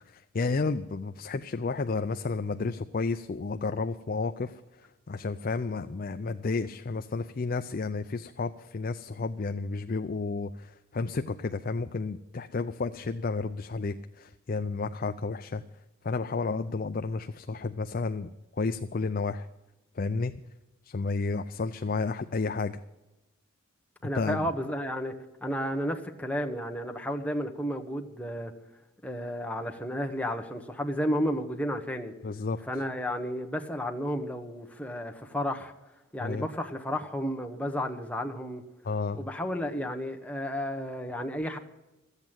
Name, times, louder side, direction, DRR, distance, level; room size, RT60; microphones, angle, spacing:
voice 1, 0.1-15.6 16.0-18.3 18.6-19.5 19.9-20.3 20.8-22.8 24.1-24.5 32.2-32.6 36.2-36.5 38.8-39.2, left 4 dB, 40° left, 0.4 m, -31 dB
voice 2, 24.0-25.1 25.4-28.5 29.0-32.1 32.7-35.7 36.1-38.6 39.1-41.6, equal, 5° left, 1.0 m, -32 dB
14.0 x 8.2 x 8.9 m
head